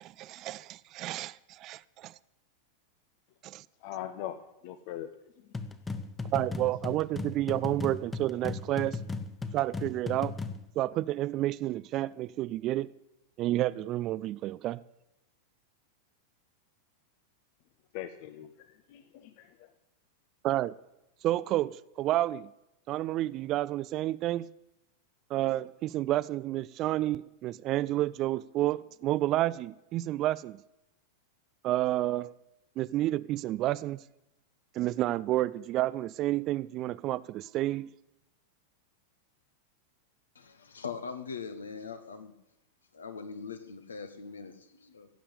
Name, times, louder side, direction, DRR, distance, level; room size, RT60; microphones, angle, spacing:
voice 1, 0.0-2.1 3.4-3.6 6.3-9.0 9.5-10.3 10.8-12.9 13.4-14.8 20.4-20.8 21.2-22.5 22.9-24.5 25.3-30.6 31.6-32.3 32.8-34.0 34.7-37.9, right 15 dB, 35° right, 0.4 m, -30 dB
voice 2, 3.8-4.4 4.6-5.1 17.9-19.7, left 12 dB, 45° left, 0.9 m, -41 dB
sound 1, 5.5-10.7, left 3 dB, 15° left, 1.1 m, -37 dB
voice 3, 40.3-42.3 42.9-45.1, left 5 dB, 70° left, 1.5 m, -41 dB
15.5 x 8.5 x 8.5 m
figure-of-eight pair, 90°, 0 cm